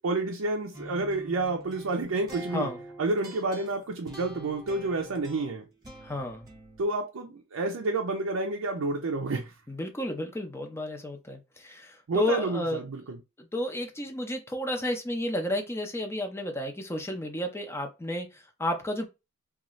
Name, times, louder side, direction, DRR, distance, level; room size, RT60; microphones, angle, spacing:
voice 1, 0.0-2.7 3.0-5.6 6.8-9.5 12.1-13.2, right 2 dB, 90° right, 0.5 m, -29 dB
sound 1, 0.7-6.9, right 1 dB, 20° right, 1.0 m, -45 dB
voice 2, 6.0-6.5 9.7-12.8 13.4-19.0, left 1 dB, 15° left, 0.5 m, -32 dB
2.6 x 2.4 x 3.0 m
head